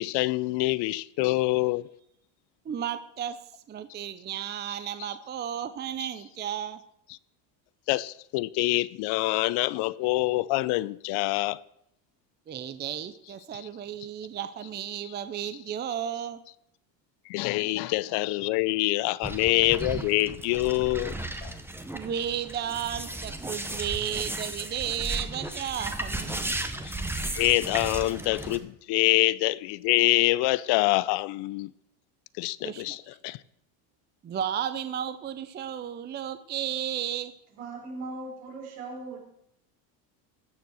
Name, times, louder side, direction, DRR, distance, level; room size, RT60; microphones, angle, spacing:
voice 1, 0.0-1.9 7.9-11.6 17.3-21.2 21.4-21.6 26.8-26.9 27.3-31.7 32.4-33.4, left 19 dB, 55° left, 0.5 m, -25 dB
voice 2, 2.6-3.4 3.7-6.8 12.5-16.4 21.9-26.6 32.6-33.0 34.2-37.3, right 9 dB, 20° right, 0.5 m, -33 dB
sound 1, 19.2-28.6, right 2 dB, 5° right, 1.0 m, -35 dB
voice 3, 37.6-39.2, right 3 dB, 75° right, 5.3 m, -38 dB
14.5 x 6.8 x 6.2 m
supercardioid pair, 110°, 50 cm